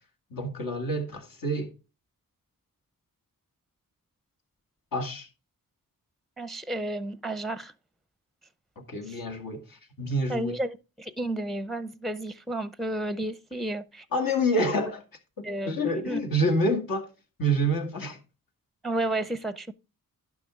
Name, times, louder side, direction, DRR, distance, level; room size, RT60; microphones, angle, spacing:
voice 1, 0.3-1.7 4.9-5.3 8.9-10.5 14.1-15.0 15.4-17.1 17.4-18.2, equal, 70° left, 2.1 m, -27 dB
voice 2, 6.4-7.7 9.1-9.2 10.3-14.0 15.4-16.2 18.8-19.7, right 1 dB, ahead, 0.6 m, -32 dB
10.5 x 5.6 x 3.6 m
cardioid pair, 70°, 35 cm